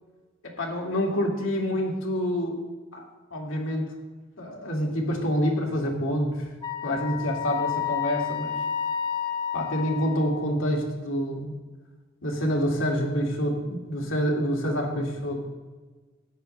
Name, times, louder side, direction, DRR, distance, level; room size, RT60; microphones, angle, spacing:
voice 1, 0.4-2.6 2.9-3.0 3.3-3.9 4.4-6.5 6.8-8.6 9.5-11.5 12.2-15.4, equal, 75° left, 0 dB, 2.2 m, -27 dB
Wind instrument woodwind instrument, 6.6-10.5, left 8 dB, 20° left, 0.6 m, -30 dB
13.5 x 9.7 x 3.3 m, 1.3 s
head